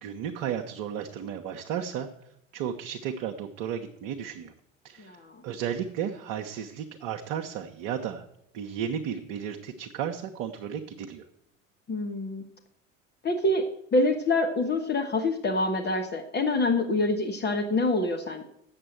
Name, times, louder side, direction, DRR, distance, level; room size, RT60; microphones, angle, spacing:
voice 1, 0.0-2.1 2.5-4.5 4.8-5.2 5.4-8.2 8.5-11.2, right 8 dB, 50° right, 4 dB, 1.0 m, -33 dB
voice 2, 5.0-5.3 11.9-12.4 13.2-13.7 13.9-18.4, left 2 dB, 25° left, 3 dB, 1.2 m, -26 dB
7.8 x 7.3 x 7.8 m, 0.76 s
figure-of-eight pair, 65°, 39 cm